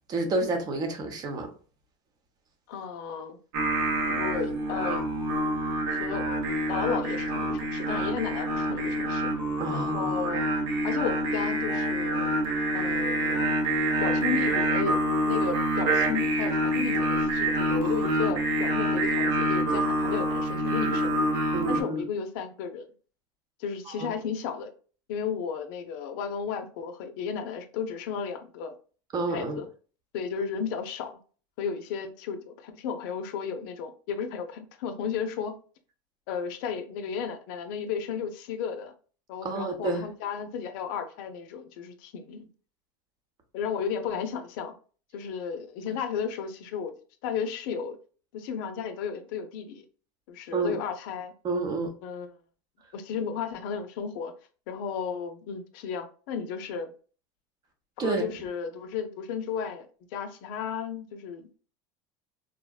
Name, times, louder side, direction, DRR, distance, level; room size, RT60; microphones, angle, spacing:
voice 1, 0.1-1.5 9.6-10.2 21.5-22.0 23.9-24.1 29.1-29.6 39.4-40.0 50.5-50.8 51.4-51.9 58.0-58.2, right 2 dB, 35° right, 0.8 m, -29 dB
voice 2, 2.7-3.4 4.1-5.1 5.9-6.3 6.7-9.3 9.7-10.4 10.8-12.3 12.7-13.6 14.0-21.2 21.7-22.9 23.6-24.7 25.1-28.8 29.3-29.7 30.1-31.2 31.6-35.5 36.3-38.9 39.3-42.5 43.5-44.7 45.1-46.9 47.2-48.0 48.3-49.8 50.3-51.3 52.0-52.3 52.9-54.3 54.7-56.9 58.0-61.6, left 6 dB, 70° left, 0.5 m, -34 dB
Singing, 3.5-21.8, right 1 dB, 70° right, 0.9 m, -27 dB
3.7 x 2.1 x 2.3 m
supercardioid pair, 110°, 12 cm